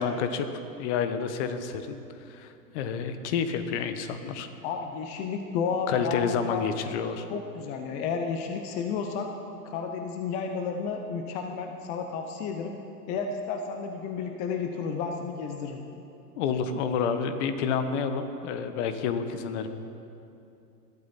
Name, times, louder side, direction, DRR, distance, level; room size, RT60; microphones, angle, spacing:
voice 1, 0.0-2.0 2.3-4.5 5.9-7.3 16.4-19.7, left 6 dB, 45° left, 9 dB, 1.3 m, -29 dB
voice 2, 4.6-6.6 7.3-9.3 9.7-12.7 13.1-15.8, left 5 dB, 15° left, 5 dB, 0.4 m, -32 dB
21.0 x 12.0 x 4.2 m, 2.7 s
hypercardioid pair, 115°, 49 cm